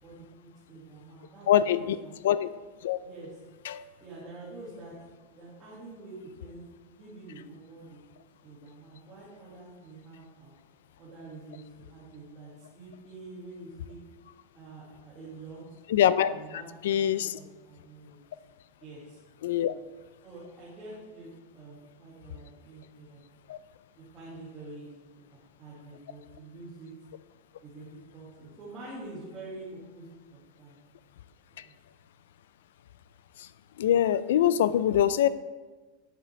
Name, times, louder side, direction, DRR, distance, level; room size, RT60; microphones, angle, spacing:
voice 1, 0.0-2.2 3.0-3.4 4.0-4.9 5.3-6.6 7.0-10.6 11.0-14.0 14.5-15.6 16.3-18.2 18.8-19.2 19.6-19.7 20.2-23.2 24.0-26.9 27.6-27.9 28.1-30.7 31.6-31.8, right 2 dB, 15° right, -10 dB, 2.0 m, -47 dB
voice 2, 1.5-2.0 2.2-2.5 2.8-3.0 3.7-3.8 15.9-16.3 16.8-17.3 19.4-19.7 23.5-23.6 33.8-35.3, left 10 dB, 80° left, 16 dB, 0.4 m, -23 dB
10.0 x 7.9 x 3.2 m, 1.3 s
supercardioid pair, 175°, 0 cm